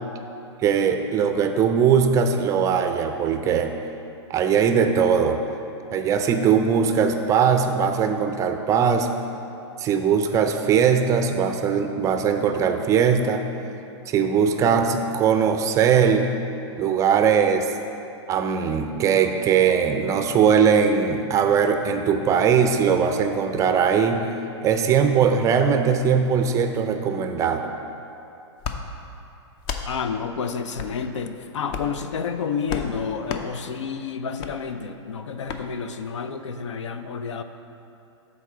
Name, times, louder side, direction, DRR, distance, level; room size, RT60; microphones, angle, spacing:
voice 1, 0.6-3.8 4.3-5.4 5.9-9.1 9.8-13.4 14.1-16.3 16.8-17.7 18.3-24.3 24.6-27.7, right 7 dB, 20° right, 6 dB, 0.4 m, -20 dB
sound 1, 28.6-28.8 29.6-29.9 30.7-30.9 31.7-32.0 32.7-32.9 33.3-33.5 34.4-34.5 35.5-35.6, left 6 dB, 35° left, 0.5 m, -31 dB
voice 2, 29.8-37.4, left 6 dB, 85° left, 9 dB, 0.5 m, -30 dB
7.3 x 4.1 x 5.6 m, 2.8 s
hypercardioid pair, 130°, 15 cm